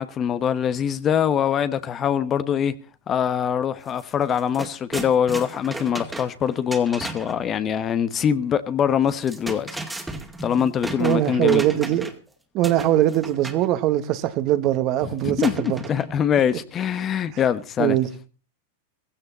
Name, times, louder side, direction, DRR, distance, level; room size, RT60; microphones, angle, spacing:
voice 1, 0.0-2.7 3.1-9.8 10.4-11.6 15.2-18.0, left 8 dB, 30° left, 1.1 m, -23 dB
sound 1, 3.9-4.0 4.3-7.4 9.1-12.3 12.6-13.7 15.4-16.3, right 2 dB, 10° right, 2.3 m, -34 dB
voice 2, 11.0-12.1 12.5-15.8 17.8-18.1, right 13 dB, 45° right, 1.7 m, -21 dB
16.0 x 15.5 x 4.2 m
hypercardioid pair, 100°, 0 cm